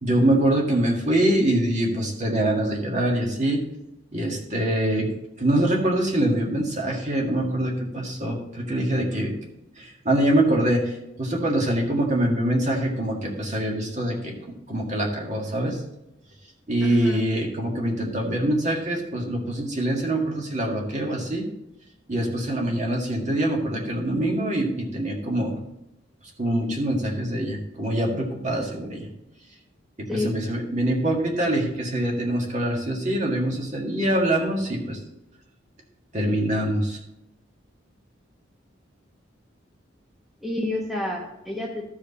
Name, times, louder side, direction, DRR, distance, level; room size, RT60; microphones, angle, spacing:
voice 1, 0.0-3.6 4.1-5.1 5.4-9.3 9.8-14.3 14.7-15.8 16.7-21.5 22.1-25.6 26.4-29.1 30.0-35.0 36.1-37.0, right 1 dB, 40° right, 0 dB, 1.8 m, -24 dB
voice 2, 16.8-17.2 30.1-30.3 40.4-41.8, left 2 dB, ahead, -2 dB, 1.0 m, -29 dB
14.0 x 4.9 x 4.2 m, 0.88 s
head